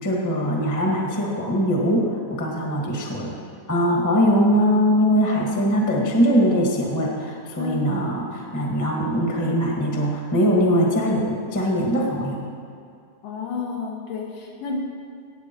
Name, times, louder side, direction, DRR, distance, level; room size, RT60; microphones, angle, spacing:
voice 1, 0.0-3.3 3.7-12.4, equal, 10° left, -1 dB, 0.9 m, -21 dB
voice 2, 7.6-7.9 13.2-14.8, left 4 dB, 85° left, -1 dB, 3.4 m, -30 dB
16.5 x 9.0 x 4.6 m, 2.3 s
omnidirectional pair, 3.7 m